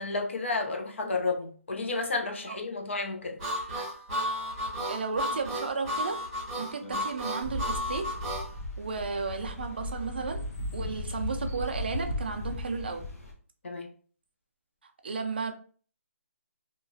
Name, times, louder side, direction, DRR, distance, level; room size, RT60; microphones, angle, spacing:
voice 1, 0.0-3.4 6.8-7.0 13.6-13.9, left 3 dB, 55° left, 0.6 m, -32 dB
Harmonica, 3.4-8.5, equal, ahead, 0.8 m, -33 dB
voice 2, 4.9-6.2 6.6-8.1 8.8-13.1 15.0-15.5, right 4 dB, 45° right, 0.4 m, -33 dB
sound 1, 7.4-13.3, left 1 dB, 80° left, 0.9 m, -36 dB
2.8 x 2.4 x 2.6 m
hypercardioid pair, 175°, 8 cm